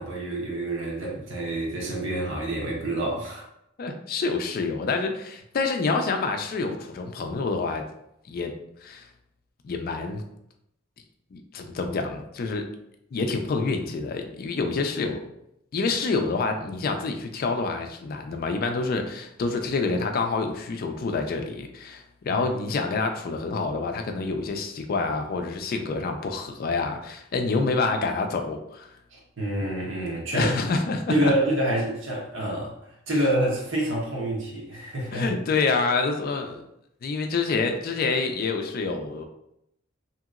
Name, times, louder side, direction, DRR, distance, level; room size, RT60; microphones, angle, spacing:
voice 1, 0.0-3.5 22.3-22.4 29.1-30.5 31.1-35.3, right 1 dB, 70° right, -2 dB, 0.9 m, -27 dB
voice 2, 3.8-7.8 8.3-8.5 8.8-9.1 9.6-10.2 11.3-12.7 13.1-15.2 15.7-28.9 30.3-31.3 35.1-36.7 37.0-39.3, left 4 dB, 50° left, 5 dB, 0.4 m, -27 dB
2.8 x 2.8 x 2.4 m, 0.78 s
head